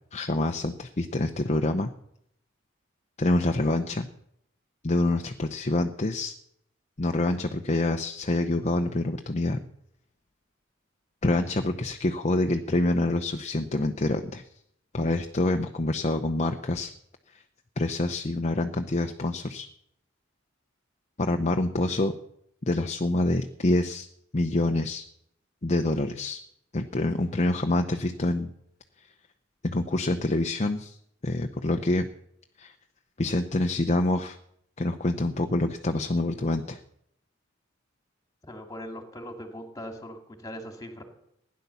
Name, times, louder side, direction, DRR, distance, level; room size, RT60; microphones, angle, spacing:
voice 1, 0.1-1.9 3.2-4.1 4.8-6.4 7.0-9.6 11.2-14.4 14.9-16.9 17.3-17.4 17.8-19.7 21.2-22.1 22.6-24.1 24.3-25.1 25.6-26.4 26.7-28.5 29.6-31.0 31.2-32.1 32.6-32.7 33.2-34.4 34.8-36.8, left 2 dB, 35° left, 5 dB, 0.7 m, -26 dB
voice 2, 38.5-41.0, equal, 20° left, 4 dB, 2.3 m, -40 dB
16.0 x 10.5 x 6.9 m, 0.74 s
head